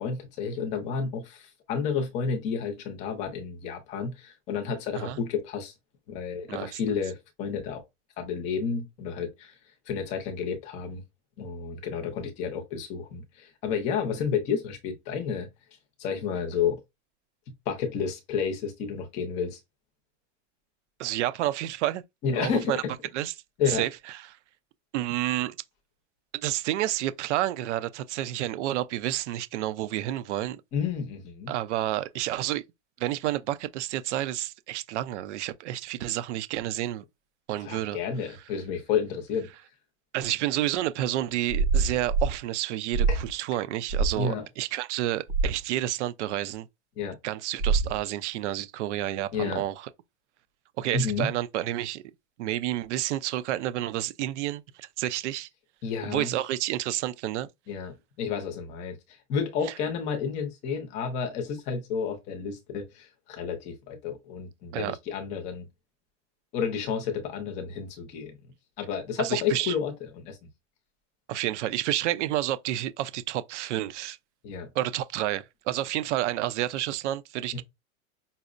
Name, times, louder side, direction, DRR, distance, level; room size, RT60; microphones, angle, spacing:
voice 1, 0.0-5.7 6.1-7.8 8.2-9.6 9.9-11.0 11.4-15.5 16.0-16.8 17.5-19.6 22.2-22.8 23.6-23.8 30.7-31.5 37.6-39.5 43.1-43.2 44.2-44.5 47.0-47.2 49.3-49.6 50.9-51.3 55.8-56.3 57.7-65.7 66.5-68.3 68.8-70.4 74.4-74.7 77.5-77.6, left 6 dB, 20° left, 0.5 m, -31 dB
voice 2, 21.0-22.0 22.4-22.8 23.1-23.3 23.7-23.9 24.9-25.6 26.3-30.6 31.5-32.6 33.0-37.0 37.5-38.0 40.1-46.7 47.2-49.8 50.8-52.0 52.4-55.5 56.0-57.5 64.7-65.0 69.2-69.7 71.3-74.2 74.7-77.6, right 14 dB, 70° right, 0.5 m, -30 dB
sound 1, 41.5-42.4 42.9-43.3 43.9-44.2 45.3-45.6 47.6-48.0, right 4 dB, 85° right, 1.0 m, -25 dB
5.3 x 2.0 x 2.4 m
supercardioid pair, 170°, 37 cm